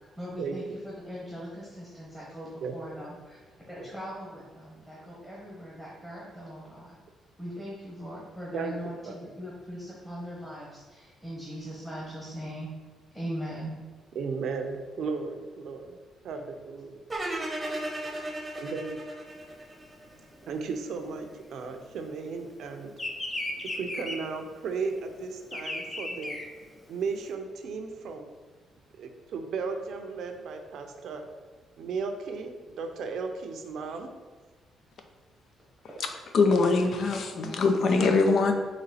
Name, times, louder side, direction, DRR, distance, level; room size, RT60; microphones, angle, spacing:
voice 1, 0.0-3.4 3.7-6.9 7.4-12.7 13.1-13.8, equal, 5° left, -6 dB, 1.2 m, -40 dB
voice 2, 14.1-16.0 16.2-17.0 18.5-19.0 20.5-22.9 23.7-26.4 26.9-28.3 29.0-31.3 31.8-34.1, right 4 dB, 70° right, 5 dB, 0.5 m, -35 dB
sound 1, 17.1-20.2, right 1 dB, 15° right, 0.9 m, -35 dB
Bird vocalization bird call bird song, 19.4-22.3 22.5-27.3, left 1 dB, 25° left, 0.7 m, -36 dB
voice 3, 36.3-38.5, left 3 dB, 60° left, 5 dB, 0.5 m, -22 dB
4.1 x 3.1 x 4.1 m, 1.4 s
cardioid pair, 90°, 0 cm